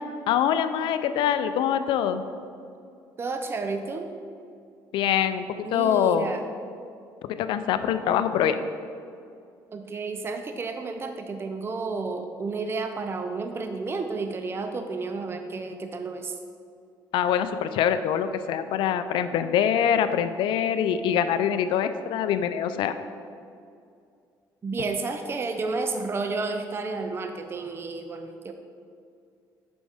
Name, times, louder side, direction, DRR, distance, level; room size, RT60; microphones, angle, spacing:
voice 1, 0.3-2.2 4.9-6.3 7.3-8.6 17.1-23.0, left 9 dB, 70° left, 11 dB, 0.4 m, -24 dB
voice 2, 3.2-4.1 5.6-6.4 9.7-16.4 24.6-28.5, right 3 dB, 30° right, 6 dB, 0.4 m, -31 dB
6.2 x 5.2 x 3.4 m, 2.4 s
supercardioid pair, 70°, 9 cm